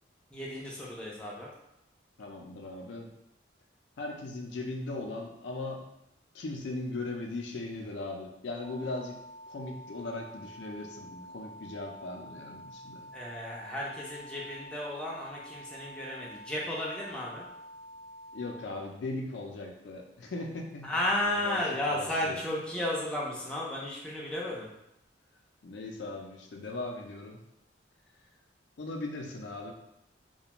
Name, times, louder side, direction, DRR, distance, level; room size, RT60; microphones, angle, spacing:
voice 1, 0.3-1.5 13.1-17.5 20.8-24.7, left 1 dB, 5° left, -5 dB, 0.4 m, -33 dB
voice 2, 2.2-3.1 4.0-5.8 6.3-9.2 9.5-13.1 18.3-20.9 21.2-22.4 25.6-27.4 28.8-29.7, left 2 dB, 75° left, 1 dB, 0.4 m, -38 dB
sound 1, 8.6-18.6, equal, 55° right, 0.7 m, -48 dB
2.4 x 2.2 x 2.9 m, 0.82 s
head